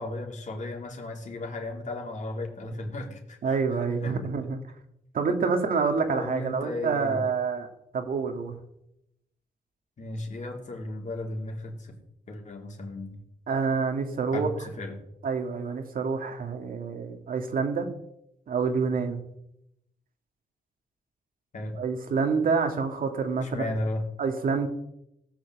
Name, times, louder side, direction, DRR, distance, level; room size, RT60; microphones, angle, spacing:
voice 1, 0.0-3.6 4.0-4.2 6.1-7.3 10.0-12.0 12.3-13.2 14.3-15.0 21.5-21.8 23.4-24.1, left 2 dB, 55° left, 1 dB, 3.4 m, -35 dB
voice 2, 3.4-4.6 5.1-7.7 7.9-8.6 13.5-14.5 15.2-17.9 18.5-19.2 21.7-23.7 24.2-24.7, right 5 dB, 70° right, 5 dB, 2.1 m, -27 dB
17.5 x 6.4 x 7.9 m, 0.82 s
cardioid pair, 85°, 15 cm